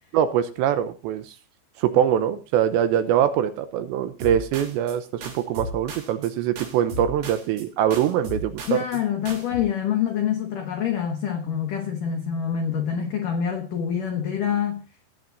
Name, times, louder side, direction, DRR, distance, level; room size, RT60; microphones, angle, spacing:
voice 1, 0.1-1.2 1.8-8.8, right 10 dB, 80° right, 2.7 m, -23 dB
sound 1, 4.2-5.0 5.2-6.3 6.6-7.6 7.9-9.0 9.2-9.6, equal, 55° right, 3.8 m, -36 dB
voice 2, 8.7-14.8, left 8 dB, 85° left, 1.8 m, -26 dB
18.0 x 9.3 x 2.6 m
omnidirectional pair, 5.7 m